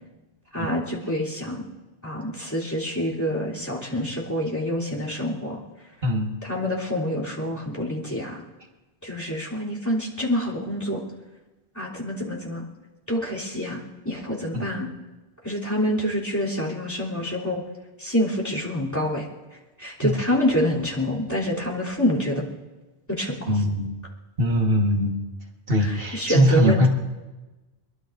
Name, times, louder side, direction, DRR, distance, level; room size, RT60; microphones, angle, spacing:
voice 1, 0.5-1.6 2.0-5.6 6.4-8.4 9.0-11.0 11.7-12.6 13.1-14.9 15.4-17.6 18.0-19.3 19.8-22.4 23.1-23.6 25.8-26.9, equal, 15° left, -5 dB, 3.3 m, -27 dB
voice 2, 6.0-6.4 14.5-14.7 20.0-20.1 23.5-24.0 24.4-25.2 25.7-26.9, equal, 60° right, 0 dB, 1.8 m, -21 dB
24.0 x 23.0 x 2.6 m, 1.2 s
omnidirectional pair, 1.1 m